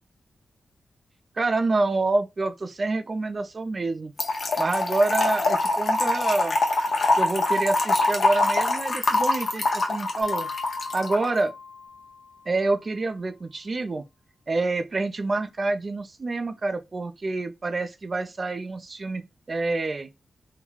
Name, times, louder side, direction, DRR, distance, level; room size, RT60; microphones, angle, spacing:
voice 1, 1.4-4.1 4.6-6.6 7.2-10.5 10.9-11.5 12.5-14.0 14.5-20.1, right 3 dB, 45° right, 0.4 m, -27 dB
Trickle dribble / Fill (with liquid), 4.2-11.3, left 2 dB, 65° left, 0.7 m, -24 dB
Mallet percussion, 10.2-12.8, left 4 dB, 5° right, 0.9 m, -38 dB
3.1 x 2.1 x 2.3 m
cardioid pair, 70°, 0 cm